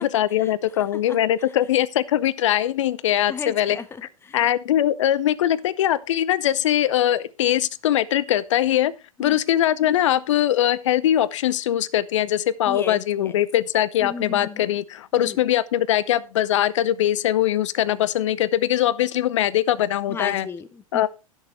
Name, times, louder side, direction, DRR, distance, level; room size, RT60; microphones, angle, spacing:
voice 1, 0.0-3.8 4.3-8.9 9.2-20.5 20.9-21.1, left 12 dB, 55° left, 0.6 m, -21 dB
voice 2, 3.3-4.5 9.2-9.4 12.7-13.4 14.0-14.7 15.1-15.4 20.1-21.1, left 5 dB, 15° left, 0.8 m, -35 dB
15.5 x 6.8 x 3.1 m
figure-of-eight pair, 100°, 18 cm